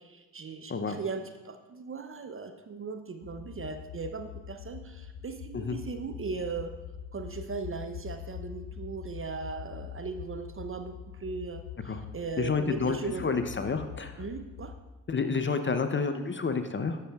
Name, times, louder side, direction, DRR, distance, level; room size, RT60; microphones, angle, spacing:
voice 1, 0.0-6.7 7.1-13.3 14.2-14.7, right 4 dB, 30° right, 7 dB, 0.6 m, -38 dB
sound 1, 3.2-14.8, left 10 dB, 60° left, 0.8 m, -44 dB
voice 2, 12.4-14.2 15.1-17.0, left 4 dB, 25° left, 8 dB, 0.6 m, -29 dB
12.5 x 6.4 x 2.3 m, 1.1 s
hypercardioid pair, 45°, 45 cm